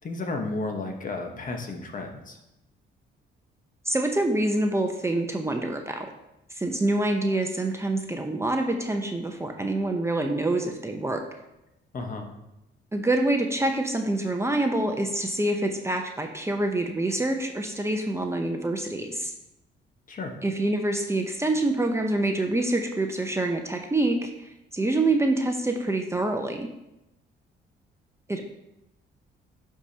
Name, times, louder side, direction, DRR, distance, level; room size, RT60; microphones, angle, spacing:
voice 1, 0.0-2.4 11.9-12.3 20.1-20.3, left 3 dB, 40° left, 3 dB, 1.2 m, -33 dB
voice 2, 3.9-6.1 6.6-11.2 12.9-19.3 20.4-26.7 28.3-28.5, right 2 dB, 15° right, 3 dB, 0.7 m, -26 dB
11.0 x 4.8 x 2.9 m, 0.91 s
cardioid pair, 90°, 20 cm